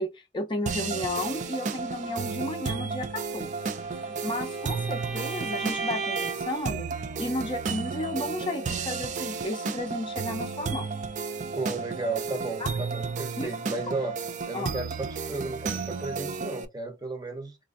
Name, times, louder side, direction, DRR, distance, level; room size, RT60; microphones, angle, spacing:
voice 1, 0.0-3.5 4.0-6.9 7.2-10.9 12.6-12.7 13.4-13.8 14.5-14.7, left 1 dB, 25° left, 0.5 m, -33 dB
sound 1, 0.7-16.7, right 5 dB, 40° right, 0.3 m, -33 dB
Bowed string instrument, 3.6-6.6, right 4 dB, 60° right, 0.9 m, -36 dB
voice 2, 11.5-14.2 14.5-17.6, right 3 dB, 20° right, 0.7 m, -34 dB
4.2 x 2.5 x 2.4 m
head